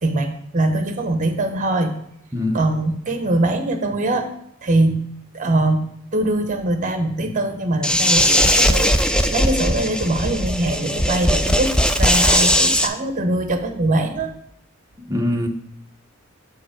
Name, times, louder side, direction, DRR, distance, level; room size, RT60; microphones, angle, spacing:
voice 1, 0.0-1.9 2.5-4.3 4.6-5.1 5.3-5.8 6.1-14.3, right 2 dB, 40° right, 0.9 m, -22 dB
sound 1, 7.8-12.9, equal, 5° left, 0.4 m, -18 dB
voice 2, 15.0-15.5, left 1 dB, 15° right, 0.7 m, -23 dB
7.8 x 4.8 x 5.0 m
head